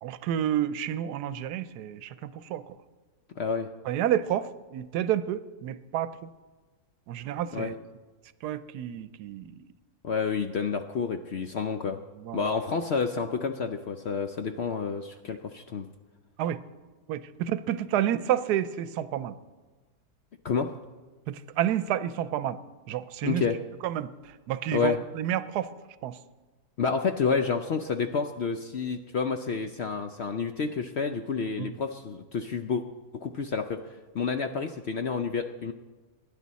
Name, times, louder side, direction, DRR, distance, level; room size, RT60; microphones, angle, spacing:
voice 1, 0.0-2.8 3.9-6.3 7.1-7.7 8.4-9.7 12.2-12.5 16.4-16.6 17.1-19.3 21.3-22.6 22.9-23.4 23.8-24.1 24.5-25.7 26.0-26.2 31.6-31.7, right 11 dB, 75° right, 15 dB, 1.1 m, -30 dB
voice 2, 3.4-3.7 7.5-7.7 10.0-12.0 12.3-15.9 20.4-20.7 23.2-23.6 24.7-25.0 26.8-32.8 33.1-33.8 34.1-35.7, left 5 dB, 70° left, 7 dB, 0.6 m, -29 dB
22.0 x 10.5 x 4.1 m, 1.3 s
omnidirectional pair, 1.8 m